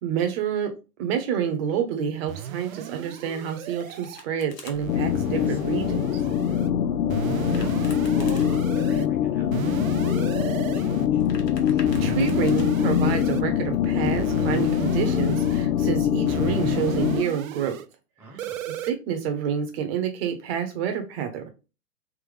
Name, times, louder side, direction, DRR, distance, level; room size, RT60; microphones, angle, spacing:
voice 1, 0.0-0.7 1.0-6.2 11.7-17.8 18.8-21.5, right 8 dB, 40° right, 6 dB, 1.0 m, -28 dB
sound 1, 2.3-4.2 4.7-6.7 7.1-9.1 9.5-11.1 11.9-13.4 14.0-15.7 16.3-17.9 18.4-18.9, right 11 dB, 60° right, 0.5 m, -35 dB
Domestic sounds home sounds, 3.4-4.8 7.3-8.5 11.0-12.7, left 4 dB, 85° left, 1.3 m, -46 dB
sound 2, 4.9-17.2, left 9 dB, 70° left, 0.5 m, -23 dB
voice 2, 5.2-5.8 6.2-6.7 7.5-11.2 18.2-18.7, right 2 dB, 5° right, -2 dB, 0.5 m, -43 dB
3.6 x 3.0 x 3.4 m, 0.31 s
hypercardioid pair, 125°, 48 cm